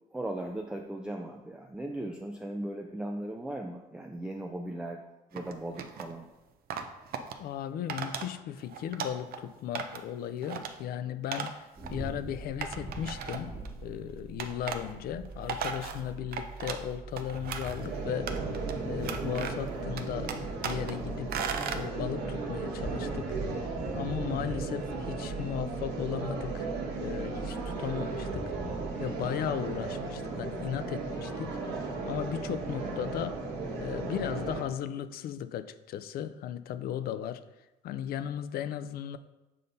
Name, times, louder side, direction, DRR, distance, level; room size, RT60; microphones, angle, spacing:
voice 1, 0.1-5.0 5.3-6.3, right 1 dB, 5° right, 3 dB, 0.4 m, -37 dB
sound 1, 5.3-6.1 6.7-7.3 7.9-8.3 8.6-9.4 9.7-10.1 10.4-10.7 11.3-11.5 11.8-11.9 12.6-13.7 14.4-14.8 15.2-16.9 17.2-17.9 18.3-18.7 19.0-19.7 20.0-20.9 21.3-21.8, right 6 dB, 60° right, 0.6 m, -36 dB
voice 2, 7.4-13.6 13.8-18.3 18.8-20.3 20.6-21.5 21.7-23.3 23.6-26.7 27.0-28.5 29.0-31.6 32.0-33.4 33.8-37.4 37.8-39.2, left 10 dB, 65° left, 12 dB, 0.4 m, -36 dB
sound 2, 11.8-28.9, right 3 dB, 30° right, 1.5 m, -43 dB
sound 3, 17.8-34.6, right 3 dB, 80° right, 1.4 m, -35 dB
7.5 x 2.7 x 5.2 m, 1.0 s
cardioid pair, 110°, 17 cm